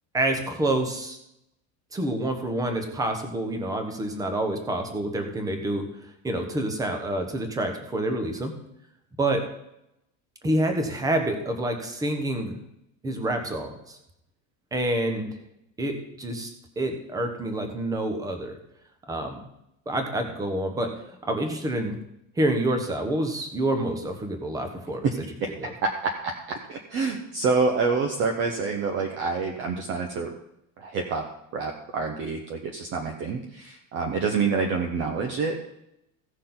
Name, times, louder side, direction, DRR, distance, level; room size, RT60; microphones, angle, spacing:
voice 1, 0.1-1.2 1.9-5.9 6.2-8.5 9.2-9.4 10.4-12.6 13.0-14.0 14.7-15.3 15.8-16.5 16.8-18.6 19.1-19.4 19.9-22.0 22.4-25.1 25.6-25.7, right 1 dB, 10° right, 5 dB, 1.1 m, -27 dB
voice 2, 25.8-30.3 30.8-31.2 31.5-35.5, right 4 dB, 30° right, 3 dB, 1.0 m, -27 dB
16.5 x 6.5 x 3.9 m, 0.82 s
cardioid pair, 175°, 38 cm